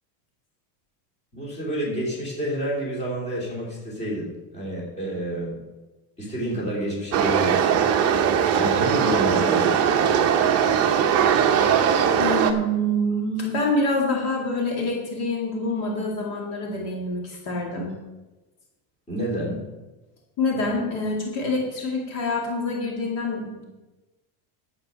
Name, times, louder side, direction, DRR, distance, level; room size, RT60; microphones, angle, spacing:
voice 1, 1.3-5.6 6.2-7.9 8.6-10.1 19.1-19.6, right 1 dB, 15° left, -4 dB, 3.1 m, -29 dB
sound 1, 7.1-12.5, right 8 dB, 30° right, 0.8 m, -20 dB
voice 2, 12.2-17.9 20.4-23.6, left 1 dB, 45° left, -2 dB, 2.4 m, -26 dB
10.5 x 8.3 x 5.7 m, 1.1 s
cardioid pair, 180°, 49 cm